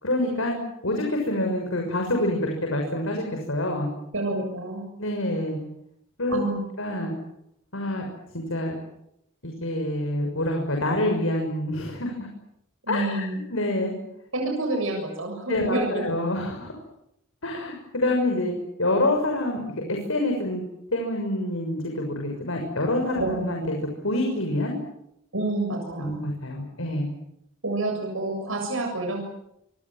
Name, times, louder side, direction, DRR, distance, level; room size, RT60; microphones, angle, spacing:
voice 1, 0.0-0.6 0.8-3.9 5.0-5.6 6.2-6.4 6.8-7.1 7.7-8.0 8.3-8.7 9.4-12.3 12.9-13.2 13.5-13.9 15.5-16.7 17.4-20.6 20.9-24.7 26.0-27.1, left 1 dB, 90° left, 2 dB, 6.5 m, -26 dB
voice 2, 4.1-4.8 6.3-6.6 12.8-13.4 14.3-16.1 23.1-23.4 25.3-26.1 27.6-29.2, right 2 dB, 90° right, 2 dB, 7.2 m, -28 dB
27.5 x 25.5 x 7.6 m, 0.80 s
head